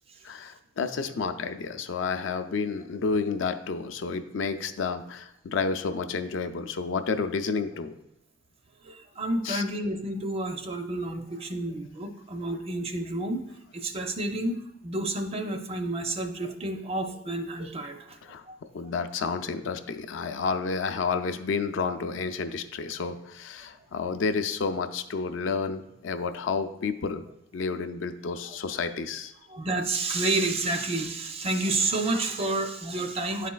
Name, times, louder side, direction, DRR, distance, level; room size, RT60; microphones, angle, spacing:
voice 1, 0.2-8.0 9.4-9.6 18.2-18.4 18.7-27.2 27.5-29.3, left 5 dB, 80° left, 9 dB, 0.4 m, -30 dB
voice 2, 8.8-13.4 13.7-18.2 18.5-18.6 29.5-33.5, right 2 dB, 30° right, 6 dB, 0.5 m, -30 dB
10.0 x 4.1 x 2.3 m, 0.82 s
head